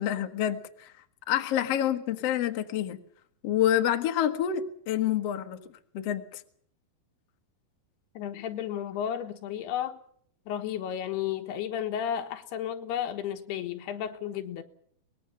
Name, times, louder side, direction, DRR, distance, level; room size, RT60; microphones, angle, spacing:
voice 1, 0.0-3.0 3.4-5.6 5.9-6.4, left 11 dB, 60° left, 1.7 m, -28 dB
voice 2, 8.1-10.0 10.5-14.6, left 9 dB, 80° left, 3.4 m, -33 dB
23.5 x 20.0 x 6.8 m
omnidirectional pair, 4.6 m